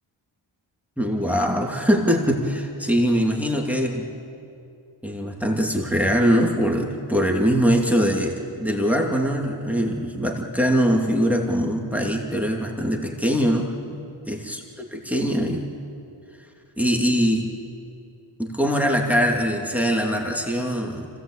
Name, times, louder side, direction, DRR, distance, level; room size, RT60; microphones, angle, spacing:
voice 1, 1.0-4.1 5.0-14.0 14.3-14.6 14.9-15.7 16.8-17.5 18.4-21.1, equal, 5° right, 0 dB, 2.5 m, -22 dB
25.5 x 17.5 x 8.5 m, 2.6 s
wide cardioid pair, 45°, 48 cm